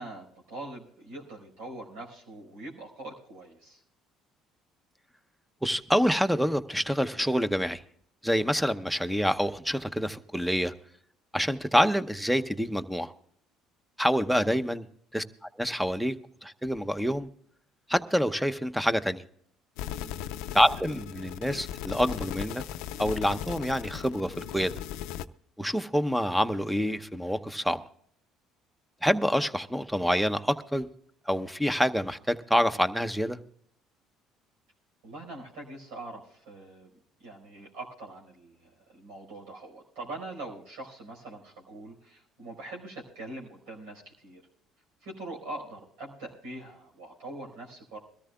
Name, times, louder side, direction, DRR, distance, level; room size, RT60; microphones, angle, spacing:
voice 1, 0.0-3.8 14.3-14.4 19.8-20.2 35.0-36.9 37.2-44.4 45.0-48.0, right 2 dB, 85° right, -2 dB, 4.7 m, -43 dB
voice 2, 5.6-7.8 8.2-10.7 11.3-13.1 14.0-14.8 15.1-15.2 15.6-16.2 16.4-17.3 17.9-19.2 20.5-22.6 23.0-24.7 25.6-27.8 29.0-30.9 31.3-33.4, equal, ahead, 12 dB, 0.8 m, -27 dB
sound 1, 19.8-25.2, left 10 dB, 80° left, 0.5 m, -37 dB
23.0 x 13.5 x 2.3 m, 0.66 s
supercardioid pair, 80°, 0 cm